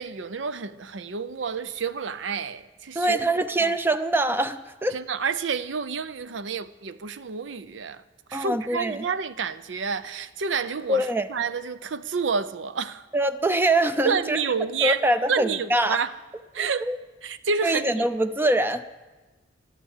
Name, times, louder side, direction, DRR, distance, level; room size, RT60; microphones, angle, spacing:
voice 1, 0.0-3.2 3.6-3.7 4.9-8.0 8.3-13.1 14.0-15.0 15.3-16.1 16.5-16.8 17.2-18.1, right 5 dB, 75° right, 0.6 m, -29 dB
voice 2, 2.9-5.0 8.3-9.1 10.9-11.3 13.1-14.4 14.8-16.0 16.6-17.0 17.6-18.8, right 1 dB, 10° right, 0.5 m, -24 dB
12.5 x 12.0 x 7.2 m
head